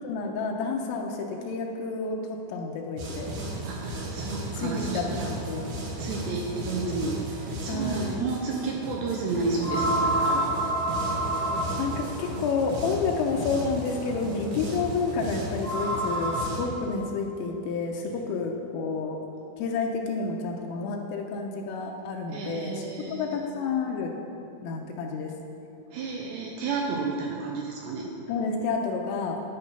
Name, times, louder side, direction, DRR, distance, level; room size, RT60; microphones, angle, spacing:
voice 1, 0.0-3.3 4.6-5.6 7.7-8.3 11.0-19.2 19.6-24.1 24.6-25.3 28.3-29.4, left 4 dB, 80° left, 1 dB, 3.3 m, -30 dB
sound 1, 3.0-16.6, right 1 dB, 65° right, 3.3 m, -35 dB
voice 2, 3.6-5.3 6.0-10.5 22.3-23.4 25.9-28.1, right 4 dB, 80° right, -1 dB, 2.5 m, -31 dB
sound 2, 9.6-12.0 13.8-13.9 15.5-16.4, right 1 dB, 45° left, 0.8 m, -27 dB
10.5 x 9.7 x 5.5 m, 2.9 s
omnidirectional pair, 5.9 m